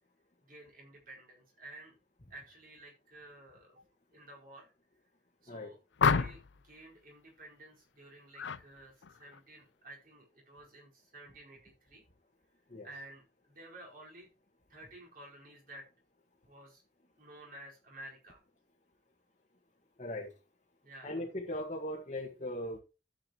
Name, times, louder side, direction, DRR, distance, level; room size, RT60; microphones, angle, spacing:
voice 1, 0.4-2.0 2.3-3.8 4.1-4.7 5.4-12.0 12.8-14.3 14.7-15.9 16.4-16.8 17.2-18.4 20.8-21.2, right 1 dB, 50° right, -2 dB, 4.7 m, -53 dB
sound 1, 6.0-6.6 8.4-8.6 9.0-9.4, left 5 dB, 75° left, 0.5 m, -29 dB
voice 2, 20.0-20.3 21.0-22.8, left 1 dB, 40° left, -2 dB, 1.7 m, -38 dB
13.5 x 8.3 x 3.0 m, 0.31 s
head